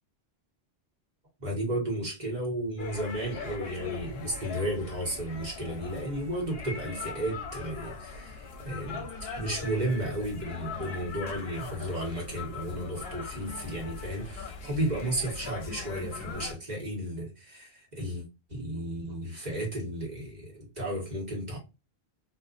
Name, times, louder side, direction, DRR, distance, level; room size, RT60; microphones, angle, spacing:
voice 1, 1.4-21.6, right 1 dB, 40° right, 1.3 m, -33 dB
sound 1, 2.8-16.5, left 4 dB, 70° left, 0.8 m, -40 dB
2.5 x 2.4 x 2.5 m
omnidirectional pair, 1.1 m